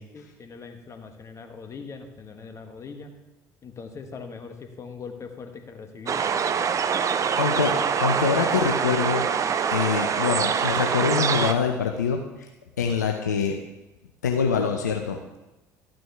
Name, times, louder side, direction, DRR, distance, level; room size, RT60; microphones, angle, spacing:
voice 1, 0.1-3.1 3.6-6.2, left 5 dB, 35° left, 5 dB, 1.5 m, -41 dB
sound 1, 6.1-11.5, right 7 dB, 35° right, 0.6 m, -24 dB
voice 2, 7.4-9.3 9.7-12.5 12.8-13.6 14.2-15.4, left 6 dB, 85° left, 3 dB, 0.7 m, -25 dB
12.5 x 9.0 x 3.5 m, 1.0 s
figure-of-eight pair, 60°, 9 cm